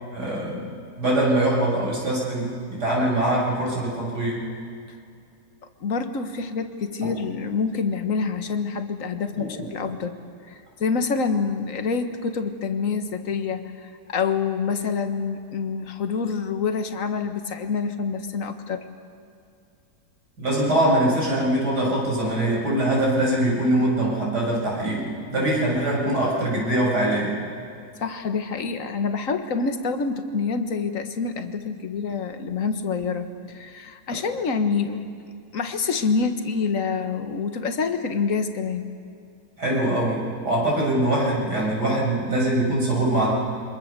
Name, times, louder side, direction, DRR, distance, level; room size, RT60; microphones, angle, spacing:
voice 1, 0.1-0.7 1.0-4.5 7.0-7.1 9.3-9.7 20.4-27.4 39.6-43.3, right 1 dB, 70° right, -3 dB, 7.4 m, -23 dB
voice 2, 5.8-10.2 10.5-18.9 28.0-35.1 35.5-38.9, left 5 dB, 50° left, 7 dB, 1.8 m, -27 dB
28.5 x 25.5 x 6.8 m, 2.5 s
omnidirectional pair, 1.9 m